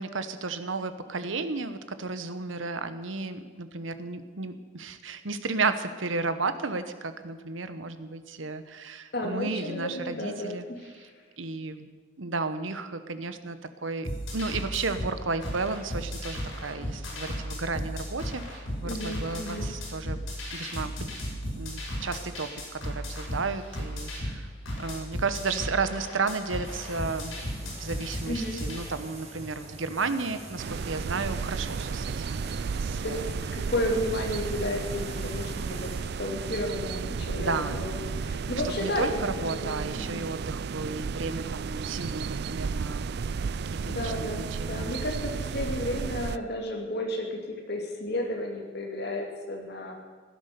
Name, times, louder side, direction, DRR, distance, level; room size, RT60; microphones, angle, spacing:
voice 1, 0.0-10.7 10.9-11.1 11.4-11.9 12.2-20.2 20.5-21.1 21.5-24.5 24.8-33.4 37.3-37.9 38.6-43.1 43.6-44.9, right 4 dB, 80° right, 11 dB, 1.0 m, -33 dB
voice 2, 9.1-10.9 18.8-19.7 28.3-28.6 33.0-33.2 33.5-35.9 36.2-40.3 43.8-49.9, left 1 dB, 55° left, 1 dB, 2.5 m, -32 dB
sound 1, 14.0-28.8, equal, 85° left, 5.9 m, -35 dB
sound 2, 26.6-36.0, right 1 dB, 35° right, 2.8 m, -44 dB
sound 3, 30.6-46.4, right 5 dB, 55° right, 0.4 m, -33 dB
16.5 x 10.5 x 6.9 m, 1.5 s
head